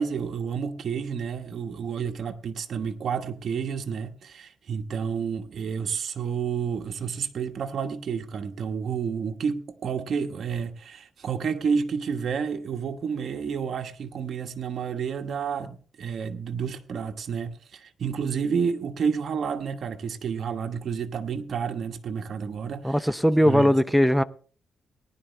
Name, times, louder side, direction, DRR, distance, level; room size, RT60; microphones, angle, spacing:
voice 1, 0.0-23.1 23.4-23.7, right 6 dB, 60° right, 1.3 m, -30 dB
voice 2, 22.8-24.2, equal, ahead, 0.6 m, -20 dB
19.0 x 11.0 x 3.3 m
cardioid pair, 120°, 0 cm